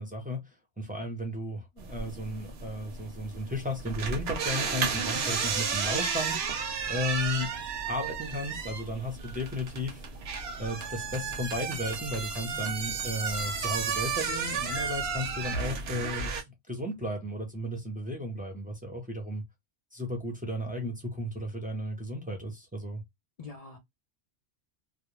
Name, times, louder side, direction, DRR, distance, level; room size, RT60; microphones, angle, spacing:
voice 1, 0.0-6.6 6.9-7.5 7.9-10.0 10.6-19.4 19.9-23.0, left 1 dB, 10° right, 0.6 m, -34 dB
Squeaking Door Sound for Halloween, 1.8-16.4, right 5 dB, 65° right, 0.9 m, -33 dB
voice 2, 12.5-12.9 23.4-23.8, left 4 dB, 75° left, 0.3 m, -45 dB
2.4 x 2.1 x 3.0 m
omnidirectional pair, 1.2 m